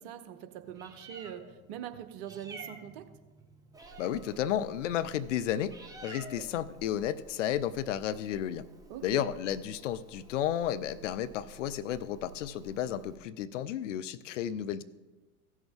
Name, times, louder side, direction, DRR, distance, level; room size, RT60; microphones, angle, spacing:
voice 1, 0.0-3.1 8.9-9.3, right 10 dB, 45° right, 9 dB, 0.9 m, -43 dB
Meow, 0.6-13.2, right 2 dB, 10° right, 1.3 m, -51 dB
voice 2, 4.0-5.8 6.0-8.6 9.0-14.8, left 10 dB, 55° left, 14 dB, 0.5 m, -32 dB
15.5 x 6.3 x 3.7 m, 1.1 s
figure-of-eight pair, 85°, 45 cm